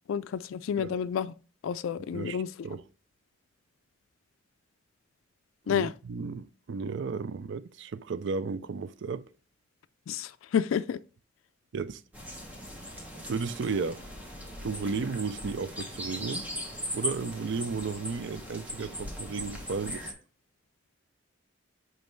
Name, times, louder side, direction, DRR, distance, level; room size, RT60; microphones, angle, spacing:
voice 1, 0.1-1.3 1.6-2.5 5.7-5.9 10.1-11.0, left 7 dB, 80° left, 0.3 m, -30 dB
voice 2, 2.1-2.8 5.7-9.3 11.7-12.0 13.3-14.0 14.6-16.5 16.9-20.1, right 4 dB, 60° right, 0.4 m, -34 dB
sound 1, 12.1-20.1, equal, 10° right, 1.3 m, -39 dB
6.1 x 5.3 x 3.1 m
head